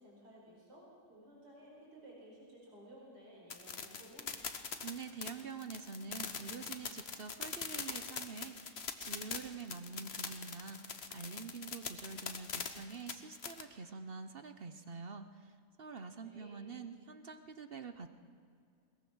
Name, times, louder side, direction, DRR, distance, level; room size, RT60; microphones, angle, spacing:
voice 1, 0.0-4.3 16.2-16.6, right 1 dB, 85° right, -4 dB, 5.9 m, -56 dB
sound 1, 3.5-13.6, left 5 dB, 45° left, 1.2 m, -42 dB
voice 2, 4.8-18.1, right 5 dB, 45° right, 9 dB, 0.9 m, -46 dB
21.5 x 20.5 x 6.2 m, 2.3 s
omnidirectional pair, 1.8 m